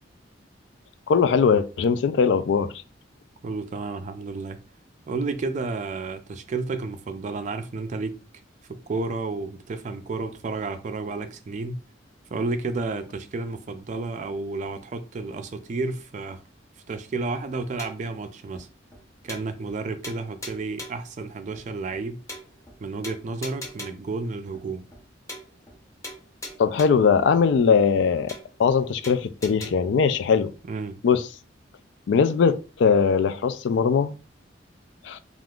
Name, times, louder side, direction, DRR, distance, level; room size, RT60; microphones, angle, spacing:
voice 1, 1.1-2.7 26.6-28.3 28.6-30.5 31.0-31.3 32.1-34.1 35.0-35.2, left 6 dB, 70° left, 0.3 m, -20 dB
voice 2, 3.4-4.6 5.1-8.2 8.7-11.8 12.3-16.4 16.9-18.7 19.2-22.2 22.8-24.8 30.7-31.0, right 3 dB, 40° right, 0.4 m, -31 dB
sound 1, 17.8-18.1 18.5-18.6 18.9-19.0 19.3-19.8 20.0-21.1 21.5-21.6 21.9-22.0 22.3-22.8 23.0-24.1 24.5-24.6 24.9-25.0 25.3-25.8 26.0-27.1 27.5-27.6 27.9-28.0 28.3-28.8 29.0-29.7, left 1 dB, 15° left, 0.6 m, -40 dB
3.5 x 2.4 x 2.3 m
head